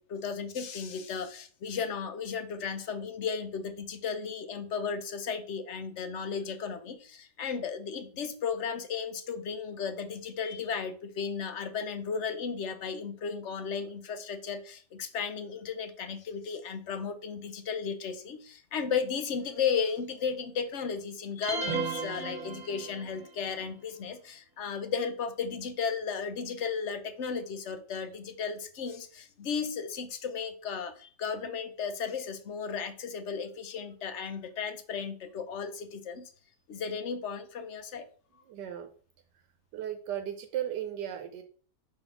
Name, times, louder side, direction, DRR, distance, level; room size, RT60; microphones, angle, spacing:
voice 1, 0.0-36.3 36.7-38.1, left 6 dB, 50° left, 9 dB, 0.9 m, -35 dB
sound 1, 21.4-23.2, right 4 dB, 55° right, 1.8 m, -34 dB
voice 2, 38.5-38.9 39.7-41.4, right 10 dB, 80° right, 6 dB, 1.4 m, -35 dB
5.2 x 4.1 x 5.8 m, 0.42 s
omnidirectional pair, 1.8 m